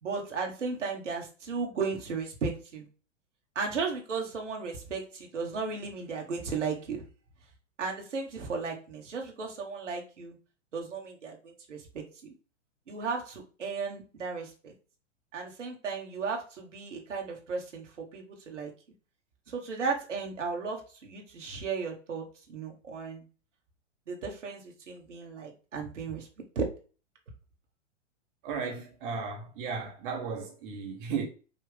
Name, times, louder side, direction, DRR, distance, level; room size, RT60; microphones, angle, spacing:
voice 1, 0.0-2.8 3.5-7.0 7.8-10.4 10.7-12.0 12.9-14.7 15.3-18.7 19.5-23.2 24.1-26.3 26.5-26.6, right 4 dB, 70° right, 1.4 m, -35 dB
voice 2, 28.4-31.3, right 5 dB, 45° right, 1.0 m, -35 dB
5.5 x 2.5 x 3.6 m
figure-of-eight pair, 105°, 37 cm